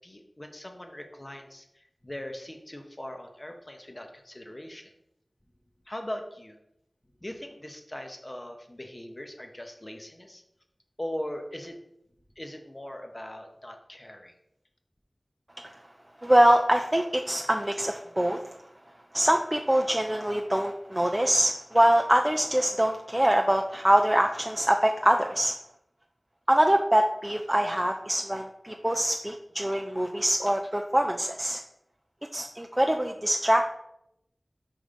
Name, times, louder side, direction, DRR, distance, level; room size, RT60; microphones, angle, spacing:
voice 1, 0.0-4.9 5.9-6.6 7.2-10.4 11.0-11.8 12.4-14.3, left 1 dB, 30° left, 4 dB, 0.9 m, -40 dB
voice 2, 16.2-18.4 19.1-25.6 26.5-31.6 32.3-33.6, right 1 dB, 20° right, 3 dB, 0.4 m, -24 dB
5.2 x 3.7 x 5.1 m, 0.79 s
wide cardioid pair, 45°, 0 cm